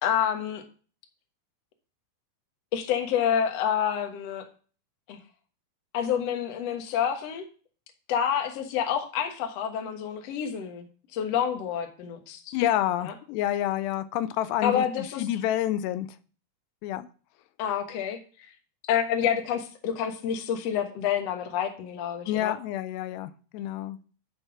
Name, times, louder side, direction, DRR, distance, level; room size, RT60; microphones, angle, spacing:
voice 1, 0.0-0.6 2.7-4.4 5.1-5.2 5.9-7.4 8.1-10.9 11.1-12.5 13.0-13.1 14.6-15.2 17.6-18.2 18.9-22.5, left 8 dB, 65° left, 5 dB, 1.7 m, -28 dB
voice 2, 12.5-16.1 16.8-17.1 22.3-24.0, left 12 dB, 90° left, 13 dB, 2.8 m, -28 dB
12.0 x 4.5 x 5.9 m, 0.40 s
omnidirectional pair, 4.7 m